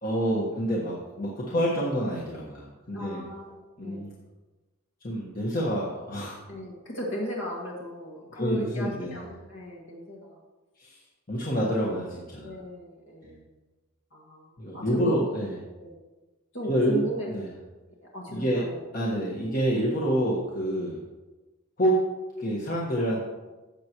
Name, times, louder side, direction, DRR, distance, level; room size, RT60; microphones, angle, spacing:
voice 1, 0.0-3.2 3.8-4.1 5.0-6.4 8.3-9.2 10.8-11.0 11.3-12.5 13.2-13.3 14.6-15.5 16.6-17.5 18.3-18.6 18.9-21.0 21.8-22.1 22.4-23.2, equal, 40° left, -4 dB, 1.4 m, -27 dB
voice 2, 2.9-4.1 6.5-10.4 12.4-13.4 14.1-15.2 15.8-15.9 16.5-17.3 18.1-18.8 20.8-20.9, equal, 60° left, -3 dB, 1.9 m, -36 dB
14.0 x 8.0 x 3.1 m, 1.2 s
head